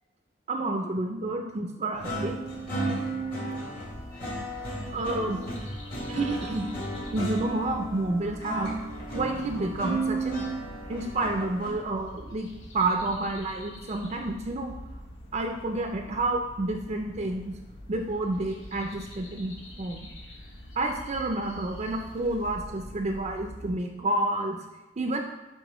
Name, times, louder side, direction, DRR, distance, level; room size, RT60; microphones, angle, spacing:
voice 1, 0.5-2.4 4.9-5.4 6.1-6.7 7.1-8.8 9.1-10.4 10.9-12.5 12.7-14.7 15.3-17.5 17.9-20.1 20.8-24.6 25.0-25.2, right 2 dB, 40° right, 3 dB, 0.4 m, -29 dB
sound 1, 1.9-11.7, right 2 dB, 55° left, 2.0 m, -34 dB
sound 2, 3.8-23.8, equal, 80° left, 1.0 m, -45 dB
10.0 x 3.5 x 3.0 m, 1.1 s
head